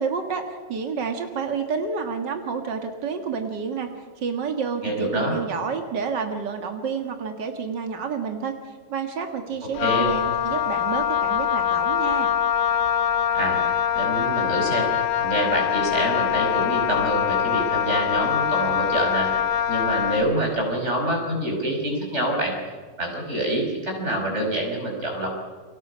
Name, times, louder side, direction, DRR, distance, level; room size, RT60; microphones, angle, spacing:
voice 1, 0.0-8.6 8.9-12.3, right 5 dB, 85° right, 5 dB, 0.9 m, -29 dB
voice 2, 4.8-5.3 9.8-10.1 13.3-13.6 13.9-14.9 15.2-19.3 19.7-22.6 23.0-25.3, right 1 dB, 15° right, 1 dB, 5.4 m, -26 dB
Wind instrument woodwind instrument, 9.8-20.3, left 9 dB, 85° left, 3.2 m, -23 dB
29.5 x 24.5 x 5.6 m, 1.4 s
omnidirectional pair, 4.9 m